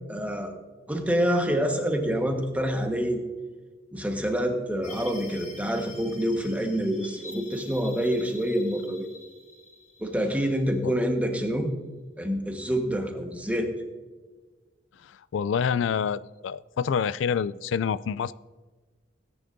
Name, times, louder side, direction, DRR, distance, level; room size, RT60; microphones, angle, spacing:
voice 1, 0.1-0.5 0.9-3.2 3.9-9.1 10.0-11.7 12.2-13.7, equal, 10° right, 4 dB, 1.3 m, -27 dB
sound 1, 4.8-11.1, left 3 dB, 40° left, 2.7 m, -47 dB
voice 2, 15.0-18.3, left 7 dB, 80° left, 17 dB, 0.3 m, -27 dB
17.5 x 10.0 x 2.6 m, 1.3 s
head